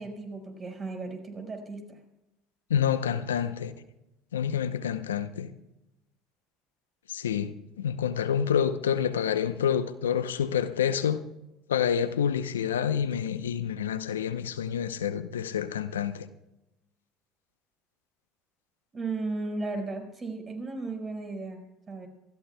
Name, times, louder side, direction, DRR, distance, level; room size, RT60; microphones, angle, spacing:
voice 1, 0.0-2.0 18.9-22.1, right 3 dB, 30° right, 4.9 m, -35 dB
voice 2, 2.7-3.7 4.3-5.5 7.1-11.2 11.7-16.3, left 8 dB, 90° left, 0.7 m, -28 dB
28.0 x 14.0 x 2.3 m
hypercardioid pair, 70°, 0 cm